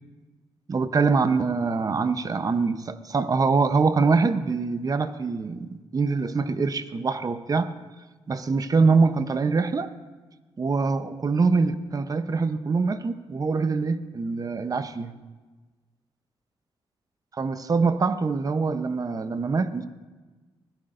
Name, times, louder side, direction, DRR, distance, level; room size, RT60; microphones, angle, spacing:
voice 1, 0.7-7.8 8.3-9.9 10.6-15.1 17.3-19.8, right 4 dB, 40° right, 10 dB, 0.8 m, -24 dB
23.5 x 17.5 x 2.6 m, 1.3 s
cardioid pair, 90°, 10 cm